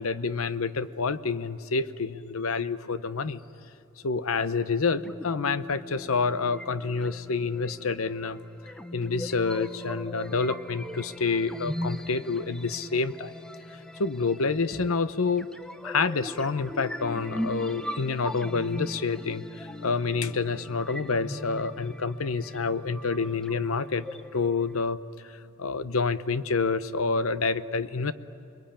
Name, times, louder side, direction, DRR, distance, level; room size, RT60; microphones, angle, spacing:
voice 1, 0.0-3.4 4.0-8.4 8.9-13.3 14.0-15.5 15.8-24.0 24.3-25.0 25.6-28.1, left 4 dB, 75° left, 13 dB, 0.8 m, -28 dB
sound 1, 4.8-24.8, equal, 5° left, 0.7 m, -40 dB
28.5 x 22.0 x 8.8 m, 2.5 s
head